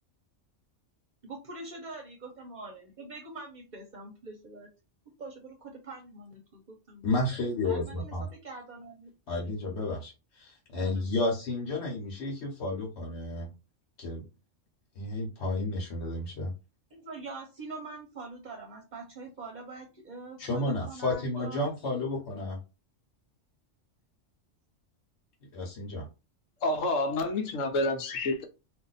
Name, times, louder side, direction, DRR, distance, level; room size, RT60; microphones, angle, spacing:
voice 1, 1.2-4.7 5.2-7.1 7.6-9.1 10.7-11.0 16.9-21.7, right 3 dB, 45° right, 0.8 m, -44 dB
voice 2, 7.0-8.2 9.3-13.5 14.0-14.2 15.0-16.5 20.4-22.6 25.5-26.0, left 2 dB, 60° left, 1.2 m, -32 dB
voice 3, 26.6-28.4, left 2 dB, 80° left, 1.1 m, -28 dB
2.6 x 2.5 x 4.0 m
omnidirectional pair, 1.3 m